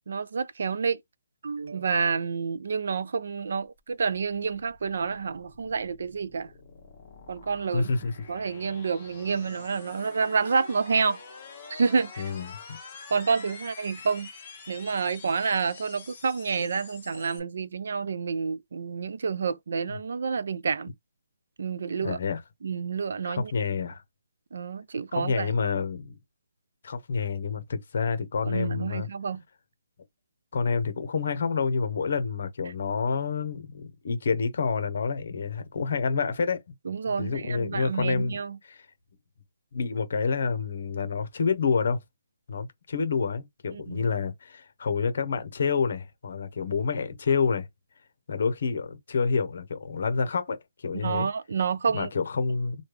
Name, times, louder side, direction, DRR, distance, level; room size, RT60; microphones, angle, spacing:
voice 1, 0.1-1.0 1.4-6.5 7.3-7.9 8.3-11.2 11.7-12.3 13.1-14.3 14.7-20.9 21.6-22.2 22.6-23.5 24.5-25.5 28.4-29.4 36.9-38.6 43.7-44.1 50.9-52.1, right 5 dB, 50° right, 0.3 m, -29 dB
sound 1, 3.6-17.4, left 5 dB, 15° left, 1.0 m, -47 dB
voice 2, 7.7-8.1 12.2-12.8 22.0-22.4 23.2-24.0 25.1-26.1 26.8-29.1 30.5-36.6 37.2-38.4 38.7-38.8 39.7-42.0 42.5-47.7 48.3-51.3 51.9-52.8, left 5 dB, 45° left, 0.9 m, -28 dB
3.2 x 2.3 x 3.3 m
hypercardioid pair, 175°, 0 cm